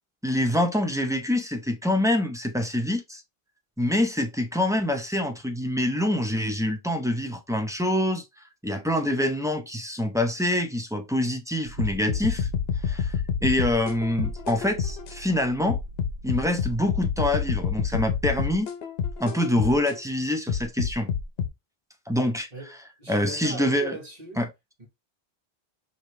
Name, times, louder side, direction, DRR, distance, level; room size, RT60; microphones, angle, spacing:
voice 1, 0.2-3.2 3.8-8.2 8.6-12.5 12.8-15.8 16.2-18.7 19.2-21.1 22.1-22.5 23.1-24.0 24.4-24.5, left 1 dB, 5° right, 0.5 m, -25 dB
sound 1, 11.7-17.3, right 3 dB, 85° right, 0.9 m, -45 dB
sound 2, 11.8-15.2 15.7-20.0 20.5-21.5, left 7 dB, 70° left, 1.0 m, -28 dB
voice 2, 22.5-24.5 24.8-24.9, right 1 dB, 40° right, 1.3 m, -39 dB
5.0 x 2.9 x 3.1 m
omnidirectional pair, 1.1 m